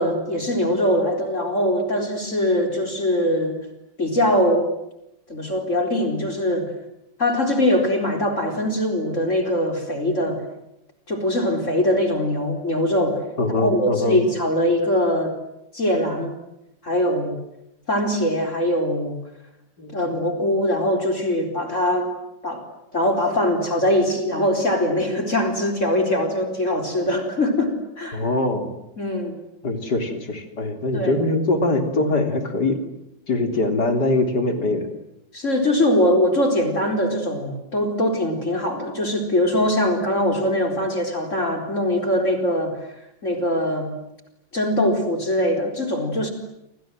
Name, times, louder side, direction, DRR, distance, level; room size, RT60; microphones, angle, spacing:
voice 1, 0.0-3.6 4.0-4.7 5.3-6.7 7.2-10.4 11.1-13.2 13.6-15.3 15.7-16.4 16.8-17.3 17.9-19.2 19.9-22.1 22.4-22.6 22.9-28.2 29.0-29.4 30.9-31.2 35.3-42.7 43.2-43.9 44.5-46.3, left 1 dB, 40° left, 5 dB, 4.6 m, -22 dB
voice 2, 13.4-14.2 19.8-20.0 28.1-28.7 29.6-32.8 33.3-34.9, left 2 dB, 65° left, 7 dB, 4.2 m, -22 dB
29.0 x 27.0 x 7.7 m, 0.85 s
omnidirectional pair, 2.0 m